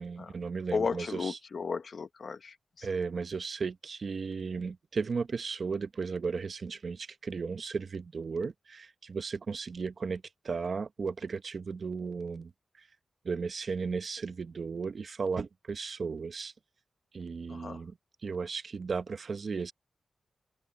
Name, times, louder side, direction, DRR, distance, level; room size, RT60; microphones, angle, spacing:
voice 1, 0.0-1.4 2.8-12.5 12.8-12.9 13.2-16.5 17.1-18.0 18.2-19.7, right 5 dB, 55° right, 1.0 m, -35 dB
voice 2, 0.7-2.9 17.5-17.8, left 5 dB, 55° left, 1.0 m, -35 dB
open air
wide cardioid pair, 120°, 0 cm